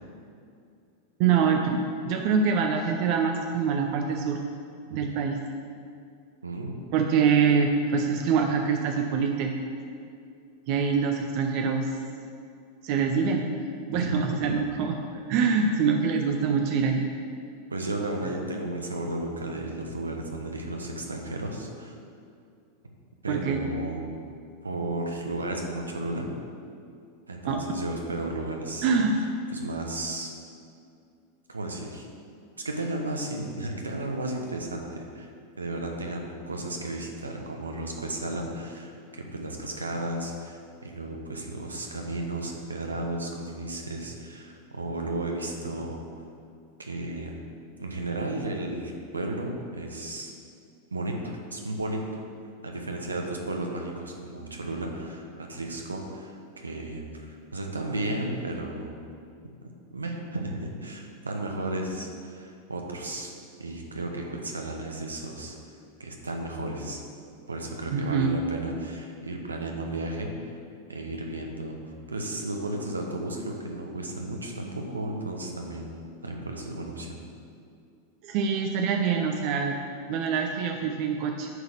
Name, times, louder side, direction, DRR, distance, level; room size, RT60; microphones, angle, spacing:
voice 1, 1.2-4.4 4.9-5.4 6.9-9.5 10.7-11.9 12.8-13.4 13.9-17.0 23.3-23.6 27.5-27.6 28.8-29.1 67.9-68.3 78.2-79.7 80.1-81.5, right 6 dB, 45° right, 4 dB, 0.6 m, -25 dB
voice 2, 6.4-6.8 13.9-14.6 17.7-21.9 23.2-24.2 24.6-26.3 27.3-28.9 29.5-30.3 31.5-32.1 32.6-35.3 35.6-46.0 46.8-47.3 47.8-50.3 50.9-52.0 52.6-58.9 59.9-63.3 63.6-65.6 66.0-67.0 67.5-70.6 70.9-71.8 72.1-75.9 76.2-77.2, right 2 dB, 80° right, 1 dB, 1.1 m, -33 dB
9.8 x 4.0 x 6.6 m, 2.4 s
figure-of-eight pair, 90°, 0 cm